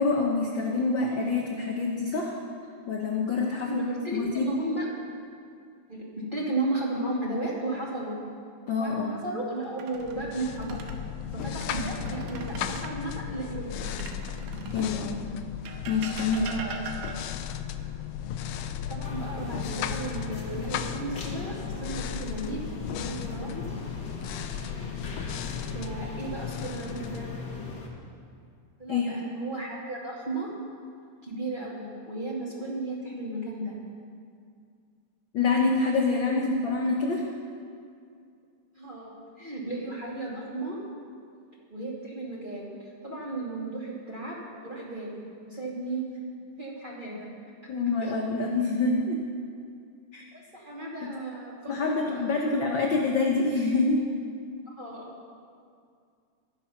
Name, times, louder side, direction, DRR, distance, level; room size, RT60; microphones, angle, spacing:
voice 1, 0.0-2.3 2.9-3.8 4.1-4.5 8.7-9.2 14.7-15.3 15.9-16.5 28.9-29.2 35.3-37.2 47.7-49.2 50.1-50.2 51.7-54.0, left 3 dB, 65° left, 0 dB, 1.1 m, -26 dB
voice 2, 3.5-4.9 5.9-8.2 8.8-10.8 11.3-14.0 16.5-16.8 17.8-17.9 18.5-22.6 22.9-23.7 25.7-27.3 28.8-30.5 31.2-33.7 38.7-40.8 41.7-42.7 43.0-46.1 46.6-47.3 48.0-48.1 50.3-52.7 54.7-55.1, right 2 dB, 15° right, -5 dB, 2.1 m, -35 dB
sound 1, 9.6-11.0 11.5-13.0 13.9-15.0 15.7-17.5 19.4-20.1 20.5-20.7 23.6-24.2 24.9-25.6, right 5 dB, 85° right, 2.5 m, -42 dB
sound 2, 10.0-27.8, left 9 dB, 90° left, 1.4 m, -36 dB
sound 3, 19.0-27.9, left 3 dB, 45° left, 1.7 m, -40 dB
21.5 x 7.6 x 5.8 m, 2.3 s
omnidirectional pair, 3.6 m